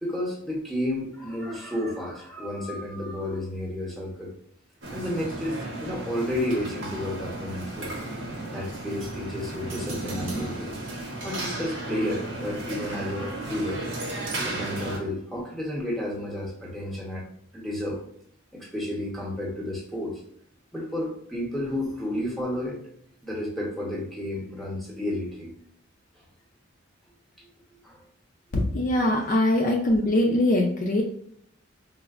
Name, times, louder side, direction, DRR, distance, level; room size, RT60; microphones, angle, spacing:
voice 1, 0.0-4.3 4.9-7.9 8.5-10.7 11.2-13.8 14.4-17.2 17.5-18.0 18.5-20.2 20.7-22.8 23.2-25.5 27.8-28.0 29.2-29.4, left 1 dB, ahead, -4 dB, 0.8 m, -31 dB
sound 1, 4.8-15.0, right 2 dB, 65° right, 0.8 m, -34 dB
voice 2, 28.5-31.0, left 1 dB, 40° left, 1 dB, 0.4 m, -22 dB
4.2 x 2.0 x 2.3 m, 0.67 s
head